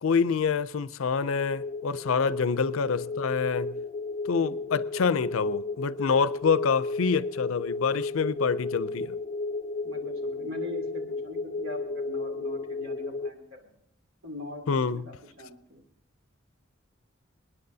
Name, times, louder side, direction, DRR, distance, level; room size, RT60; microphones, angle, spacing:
voice 1, 0.0-3.8 4.2-9.2 14.7-15.0, left 5 dB, 90° left, 0.5 m, -26 dB
sound 1, 1.3-13.3, left 3 dB, 30° left, 0.4 m, -33 dB
voice 2, 4.3-4.7 9.8-13.4 14.2-15.8, left 2 dB, 80° right, 2.8 m, -42 dB
28.0 x 10.0 x 2.7 m
head